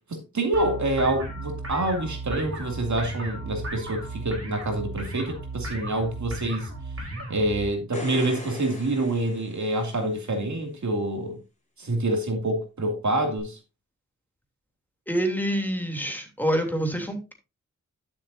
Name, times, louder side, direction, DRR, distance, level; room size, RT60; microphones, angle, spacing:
voice 1, 0.1-6.7 7.3-11.4 11.8-13.6, right 1 dB, 60° right, 2.5 m, -27 dB
sound 1, 0.5-7.6, right 2 dB, 45° right, 3.8 m, -35 dB
sound 2, 7.7-10.3 13.4-13.5, left 2 dB, 20° left, 3.5 m, -39 dB
voice 2, 15.1-17.3, right 1 dB, 5° left, 3.0 m, -26 dB
11.5 x 7.1 x 2.7 m
cardioid pair, 55°, 32 cm